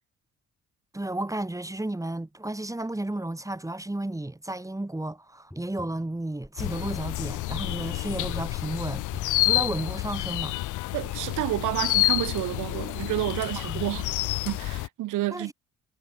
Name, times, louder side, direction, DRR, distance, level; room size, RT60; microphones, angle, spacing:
voice 1, 0.9-9.0 9.4-10.8 13.6-13.9 15.3-15.5, right 1 dB, 10° right, 5.9 m, -33 dB
Tap, 5.5-10.8 13.4-13.5, left 1 dB, 5° left, 4.7 m, -48 dB
sound 1, 6.6-14.9, left 18 dB, 90° left, 0.9 m, -29 dB
voice 2, 10.9-14.1 14.4-15.5, right 17 dB, 85° right, 1.0 m, -30 dB
cardioid pair, 90°, 30 cm